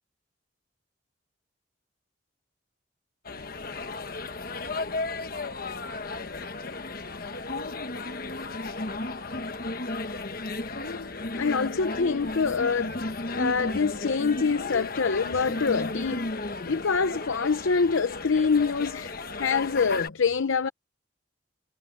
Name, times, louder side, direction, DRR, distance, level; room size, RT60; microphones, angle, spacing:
sound 1, 3.2-20.1, left 2 dB, 45° left, 1.2 m, -34 dB
voice 1, 11.3-13.0 13.4-16.3 16.7-20.7, left 5 dB, 90° left, 0.7 m, -25 dB
head